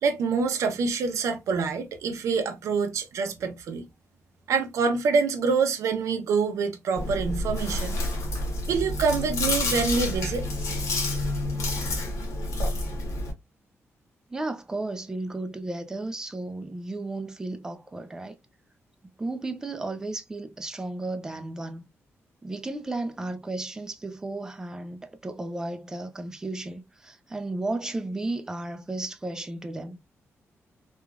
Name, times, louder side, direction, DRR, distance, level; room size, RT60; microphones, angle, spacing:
voice 1, 0.0-3.8 4.5-8.0 8.7-10.5, right 5 dB, 90° right, 0.5 m, -26 dB
Chewing mastication, 6.9-13.3, left 2 dB, 75° left, 1.0 m, -29 dB
voice 2, 14.3-18.4 19.2-21.8 22.4-30.0, right 2 dB, 10° right, 0.3 m, -34 dB
3.1 x 2.3 x 2.3 m
wide cardioid pair, 165°, 5 cm